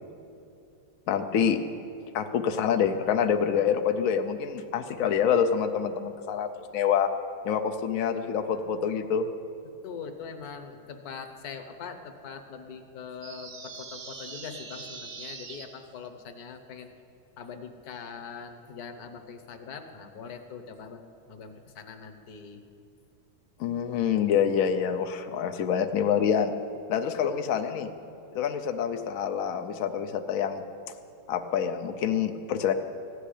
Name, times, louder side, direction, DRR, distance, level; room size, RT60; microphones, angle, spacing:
voice 1, 1.1-1.6 2.1-7.1 7.4-9.3 23.6-26.5 26.9-27.9 28.3-30.6 31.3-32.7, left 8 dB, 85° left, 6 dB, 0.7 m, -26 dB
voice 2, 9.6-16.9 17.4-22.6 26.9-27.0, left 6 dB, 55° left, 7 dB, 1.2 m, -42 dB
sound 1, 13.2-15.6, right 4 dB, 80° right, 2.3 m, -42 dB
15.0 x 6.4 x 10.0 m, 2.6 s
omnidirectional pair, 2.3 m